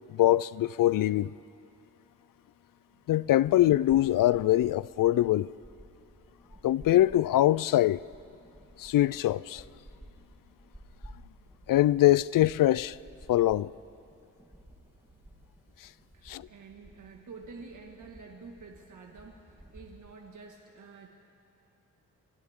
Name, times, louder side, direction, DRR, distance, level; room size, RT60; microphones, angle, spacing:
voice 1, 0.1-1.3 3.1-5.5 6.6-8.0 8.8-9.6 11.7-13.0 13.3-13.7 16.3-16.4, left 14 dB, 80° left, 0.5 m, -23 dB
sound 1, 3.2-20.2, right 1 dB, 5° right, 3.0 m, -54 dB
voice 2, 16.1-21.1, right 4 dB, 65° right, 1.9 m, -49 dB
29.5 x 24.5 x 3.7 m
wide cardioid pair, 120°, 32 cm